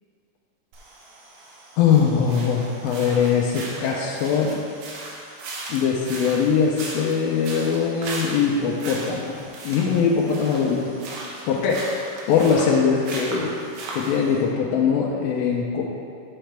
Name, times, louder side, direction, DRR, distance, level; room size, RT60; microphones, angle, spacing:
sound 1, 0.7-14.4, right 2 dB, 85° right, 3.0 m, -37 dB
voice 1, 1.8-4.6 5.7-9.4 9.6-11.0 11.5-11.9 12.3-13.6 13.9-15.8, left 6 dB, 85° left, -3 dB, 2.5 m, -21 dB
8.9 x 7.5 x 3.3 m, 2.3 s
omnidirectional pair, 4.1 m